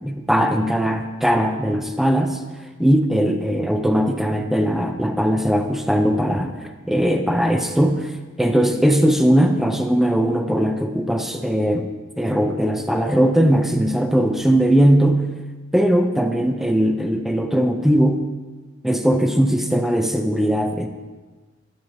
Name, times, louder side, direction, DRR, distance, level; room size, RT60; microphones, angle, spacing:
voice 1, 0.0-2.4 2.8-11.9 12.2-15.3 15.7-18.2 18.8-20.9, equal, ahead, 6 dB, 0.5 m, -19 dB
12.0 x 7.1 x 2.8 m, 1.3 s
head